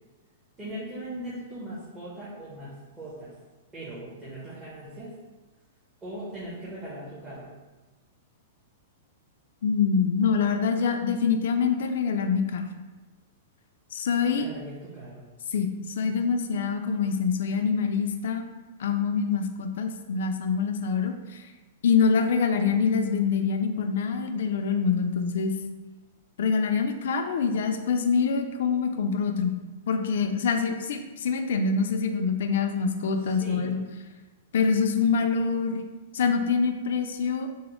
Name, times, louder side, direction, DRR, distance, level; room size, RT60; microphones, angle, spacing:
voice 1, 0.6-3.3 3.7-5.1 6.0-7.5 14.3-15.2 33.2-33.8, right 1 dB, 20° right, -9 dB, 0.8 m, -39 dB
voice 2, 9.6-12.7 13.9-14.5 15.5-18.4 18.8-21.5 21.8-25.5 26.4-29.5 29.9-33.8 34.5-35.8 36.1-37.5, left 5 dB, 70° left, 6 dB, 0.4 m, -25 dB
4.0 x 2.0 x 3.0 m, 1.2 s
hypercardioid pair, 145°, 0 cm